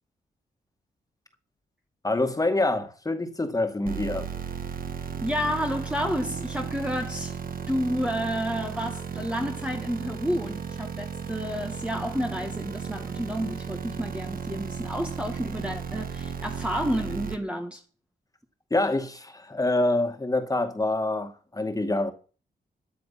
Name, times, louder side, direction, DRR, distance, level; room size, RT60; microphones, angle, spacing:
voice 1, 2.0-4.3 18.7-22.1, left 2 dB, 20° left, 2.2 m, -26 dB
sound 1, 3.9-17.4, right 6 dB, 55° right, 1.5 m, -35 dB
voice 2, 5.2-7.4 7.7-17.8, equal, 5° right, 1.5 m, -30 dB
14.0 x 9.3 x 5.8 m
cardioid pair, 105°, 17 cm